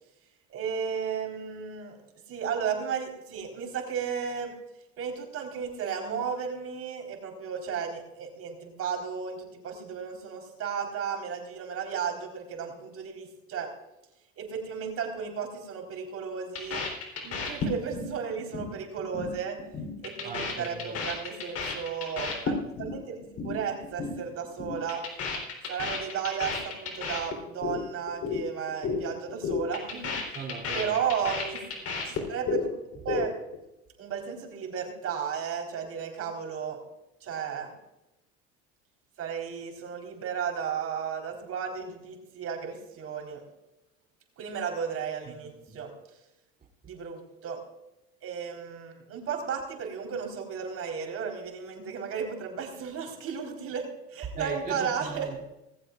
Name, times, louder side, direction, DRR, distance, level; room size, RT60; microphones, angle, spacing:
voice 1, 0.5-2.0 2.3-4.6 5.0-13.7 14.4-16.9 17.2-19.6 20.0-23.2 23.4-25.1 25.7-30.2 30.7-32.7 33.0-33.4 34.0-36.8 37.2-37.7 39.2-43.4 44.4-46.2 46.8-47.6 48.2-55.3, right 7 dB, 50° right, 4.2 m, -34 dB
sound 1, 16.6-18.1 18.4-18.7 19.0-19.3 19.6-23.0 23.2-23.6 23.8-24.2 24.4-27.8 28.1-28.4 28.7-29.0 29.3-32.6 32.9-33.6, left 5 dB, 50° left, 3.7 m, -32 dB
voice 2, 20.2-21.0 30.3-30.9 45.7-45.8 54.4-55.4, right 4 dB, 30° right, 3.0 m, -37 dB
19.5 x 15.0 x 2.5 m
supercardioid pair, 90°, 30 cm